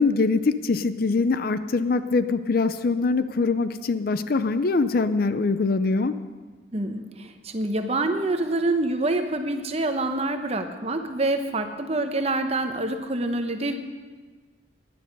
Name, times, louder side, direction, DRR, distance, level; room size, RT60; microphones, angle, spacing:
voice 1, 0.0-6.2, left 3 dB, 50° left, 12 dB, 0.5 m, -23 dB
voice 2, 6.7-13.7, right 2 dB, 30° right, 7 dB, 0.9 m, -26 dB
15.5 x 10.5 x 5.3 m, 1.4 s
head